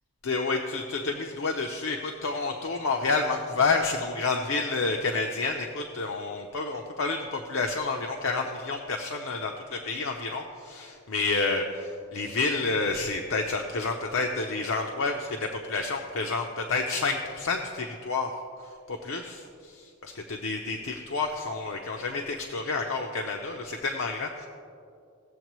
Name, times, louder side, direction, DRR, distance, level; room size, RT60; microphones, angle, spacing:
voice 1, 0.2-18.3 18.9-24.5, left 3 dB, 75° left, 3 dB, 0.6 m, -29 dB
17.5 x 7.3 x 3.1 m, 2.4 s
head